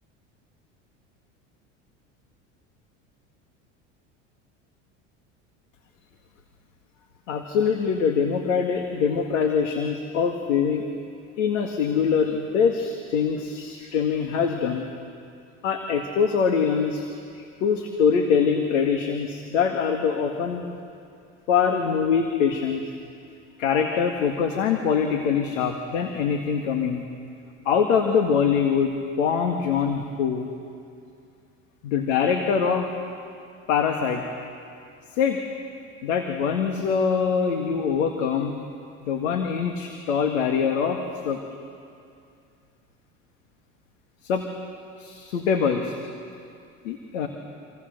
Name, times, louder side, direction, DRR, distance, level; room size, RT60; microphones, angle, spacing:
voice 1, 7.3-10.8 11.4-14.9 15.6-17.1 17.4-20.8 21.5-22.8 23.6-27.0 27.7-30.5 31.8-32.9 33.7-34.2 35.2-35.4 36.0-38.6 39.0-41.0 41.2-41.4 44.2-44.5 45.0-46.0 46.8-47.3, left 6 dB, 80° left, 4 dB, 2.0 m, -23 dB
28.0 x 26.5 x 6.7 m, 2.4 s
hypercardioid pair, 85°, 37 cm